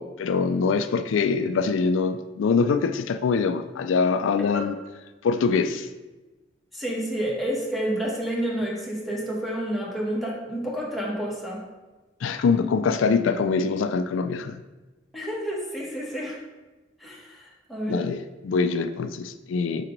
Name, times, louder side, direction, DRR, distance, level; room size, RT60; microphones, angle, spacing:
voice 1, 0.0-4.8 5.2-5.9 12.2-14.6 17.9-19.9, left 5 dB, 85° left, 10 dB, 0.3 m, -24 dB
voice 2, 6.7-11.6 15.1-16.4 17.0-18.1, right 1 dB, ahead, -5 dB, 1.2 m, -29 dB
4.8 x 4.4 x 5.0 m, 1.1 s
head